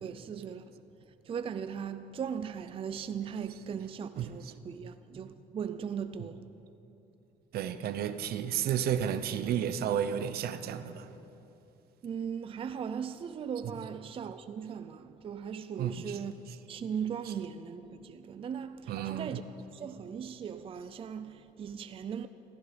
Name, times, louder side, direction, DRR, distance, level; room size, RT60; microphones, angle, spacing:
voice 1, 0.0-0.6 1.2-6.5 12.0-19.4 19.7-22.3, right 7 dB, 35° right, 0.4 m, -38 dB
voice 2, 4.2-4.5 7.5-11.1 15.8-16.2 18.9-19.3, right 9 dB, 65° right, 0.8 m, -32 dB
15.0 x 14.5 x 5.1 m
cardioid pair, 110°, 17 cm